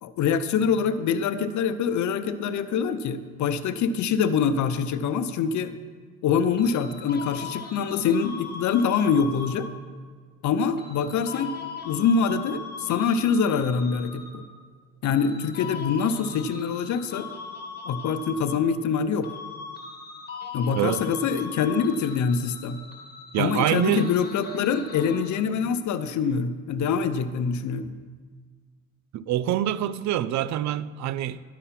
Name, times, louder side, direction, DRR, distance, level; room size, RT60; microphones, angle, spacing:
voice 1, 0.0-5.7 6.2-9.7 10.4-11.6 11.8-14.4 15.0-17.3 17.9-19.3 20.5-22.8 23.4-27.9, left 6 dB, 70° left, 0.7 m, -25 dB
sound 1, 6.6-9.9 10.8-14.6 15.0-19.0 19.2-25.6, left 5 dB, 35° left, 1.6 m, -40 dB
voice 2, 20.8-21.1 23.3-24.1 29.1-31.4, right 12 dB, 65° right, 0.4 m, -25 dB
11.0 x 5.5 x 5.9 m
cardioid pair, 90°, 30 cm